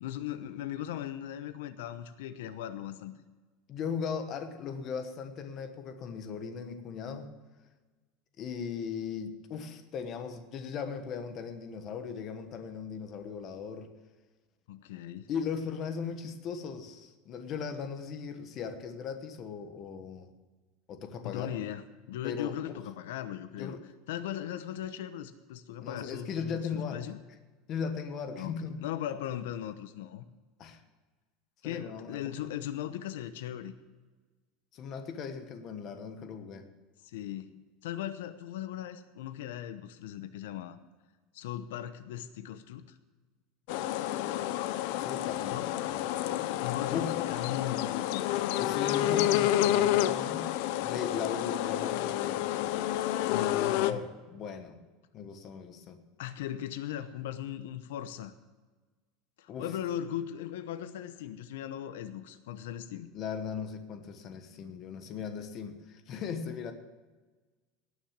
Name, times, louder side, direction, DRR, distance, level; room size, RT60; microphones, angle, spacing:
voice 1, 0.0-3.1 14.7-15.3 21.2-21.8 22.1-23.7 24.1-27.2 28.4-30.2 31.6-33.7 37.0-40.8 41.3-43.0 45.5-45.7 46.4-48.5 49.3-49.8 53.3-54.0 56.2-58.3 59.4-63.1, left 11 dB, 85° left, 10 dB, 0.9 m, -38 dB
voice 2, 3.7-7.3 8.4-13.9 15.3-20.3 20.9-21.5 22.2-22.5 23.5-23.8 25.8-27.0 27.7-28.8 30.6-30.8 31.6-32.3 34.7-36.6 45.0-46.2 46.9-47.2 48.6-50.5 50.8-52.5 53.6-54.8 55.1-56.0 59.5-59.7 63.1-66.7, left 6 dB, 30° left, 7 dB, 1.2 m, -38 dB
sound 1, 43.7-53.9, left 13 dB, 55° left, 0.6 m, -29 dB
18.5 x 6.4 x 7.3 m, 1.3 s
supercardioid pair, 175°, 0 cm